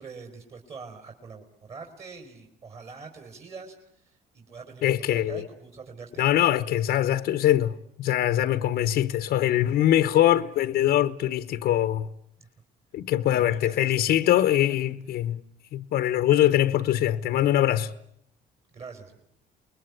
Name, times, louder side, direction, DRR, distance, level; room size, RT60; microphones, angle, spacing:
voice 1, 0.0-6.2 12.4-12.5 13.4-14.1 18.7-19.2, right 5 dB, 40° right, 4.4 m, -44 dB
voice 2, 4.8-5.4 6.2-12.1 12.9-15.4 15.7-17.9, left 12 dB, 70° left, 1.1 m, -23 dB
28.5 x 21.5 x 9.7 m
cardioid pair, 110°, 17 cm